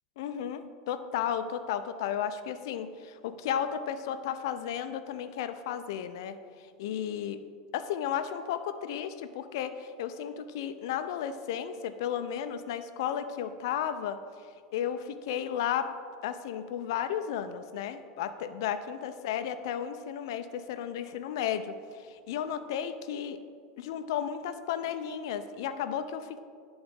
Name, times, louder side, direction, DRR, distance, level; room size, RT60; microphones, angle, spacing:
voice 1, 0.2-6.4 6.8-7.4 7.7-14.2 14.7-15.9 16.2-23.4 23.8-26.4, left 9 dB, 75° left, 10 dB, 0.4 m, -33 dB
10.5 x 3.9 x 3.6 m, 2.1 s
supercardioid pair, 115°, 2 cm